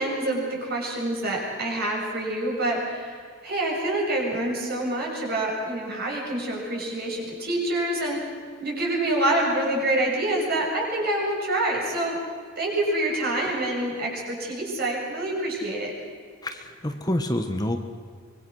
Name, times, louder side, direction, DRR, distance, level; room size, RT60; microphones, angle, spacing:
voice 1, 0.0-8.2 8.6-12.2 12.6-15.9, right 1 dB, 50° right, -1 dB, 7.3 m, -26 dB
voice 2, 16.4-17.8, left 1 dB, 20° left, 6 dB, 1.3 m, -27 dB
25.0 x 23.0 x 6.4 m, 2.1 s
head